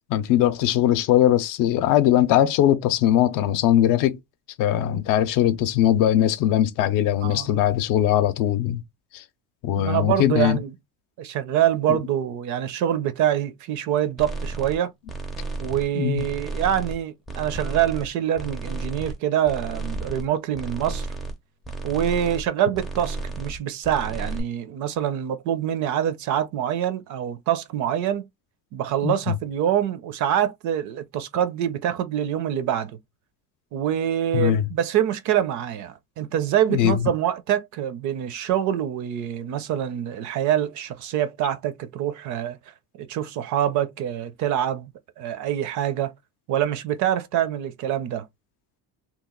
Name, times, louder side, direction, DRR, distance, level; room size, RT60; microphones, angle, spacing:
voice 1, 0.1-4.2 4.6-8.8 9.1-9.2 9.6-10.6 11.9-12.0 15.9-16.3 29.0-29.3 34.3-34.6 36.7-37.1, left 11 dB, 55° left, 0.5 m, -20 dB
voice 2, 9.8-10.7 11.2-14.9 15.6-21.1 21.8-28.3 28.7-33.0 33.7-42.6 43.0-44.9 45.2-46.1 46.5-48.3, right 10 dB, 50° right, 0.5 m, -25 dB
sound 1, 14.2-14.8 15.1-15.9 16.2-17.0 17.3-18.1 18.4-19.2 19.5-20.3 20.5-21.3 21.6-22.5 22.7-23.6 23.8-24.4, right 3 dB, ahead, 0.4 m, -32 dB
2.9 x 2.3 x 3.6 m
cardioid pair, 160°, 39 cm